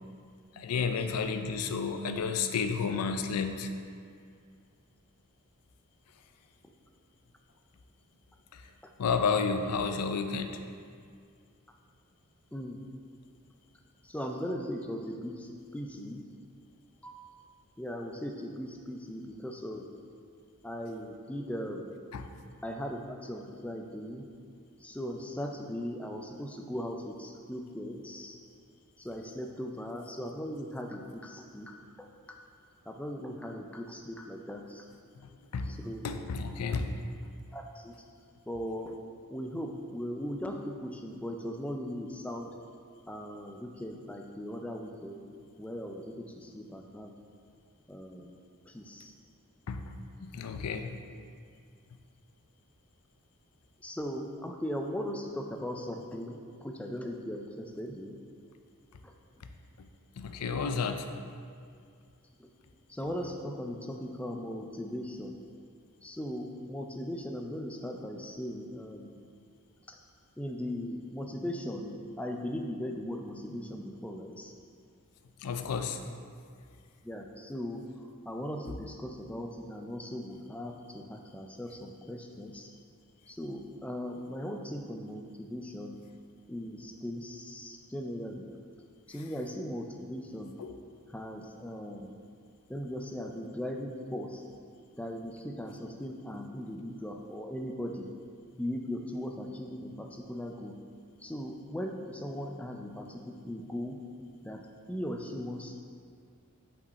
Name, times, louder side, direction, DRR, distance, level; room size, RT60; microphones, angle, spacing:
voice 1, 0.6-3.7 8.5-8.6 9.0-10.6 22.1-22.3 35.2-35.8 36.0-37.0 49.7-49.9 50.2-51.0 59.8-59.9 60.2-61.1 75.4-76.0 90.6-90.8, left 5 dB, 85° left, 7 dB, 0.5 m, -31 dB
voice 2, 12.5-12.8 14.0-16.2 17.0-19.9 20.6-21.9 22.6-24.3 24.8-28.4 29.0-32.4 32.9-34.9 35.6-36.1 37.5-38.0 38.5-39.0 39.3-42.5 43.1-45.2 45.6-47.1 47.9-48.3 48.7-49.1 53.8-58.2 59.0-59.1 62.4-62.5 62.9-65.3 66.0-69.2 69.9-70.0 70.4-74.5 77.0-82.7 83.3-86.0 86.5-88.5 89.1-90.6 91.1-92.1 92.7-94.4 95.0-98.1 98.5-100.8 101.2-104.0 104.4-105.8, equal, 5° left, 2 dB, 0.4 m, -38 dB
5.4 x 5.4 x 4.0 m, 2.2 s
head